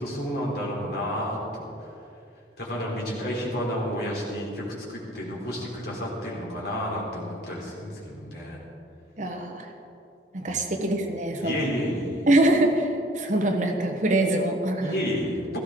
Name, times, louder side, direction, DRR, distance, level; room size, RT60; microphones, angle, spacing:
voice 1, 0.0-1.7 2.6-8.6 10.5-10.7 11.4-12.3 14.8-15.6, equal, 60° left, -4 dB, 3.7 m, -31 dB
voice 2, 9.2-9.7 10.3-11.7 12.3-15.0, right 1 dB, 45° right, 3 dB, 1.2 m, -24 dB
17.0 x 14.5 x 3.8 m, 2.7 s
head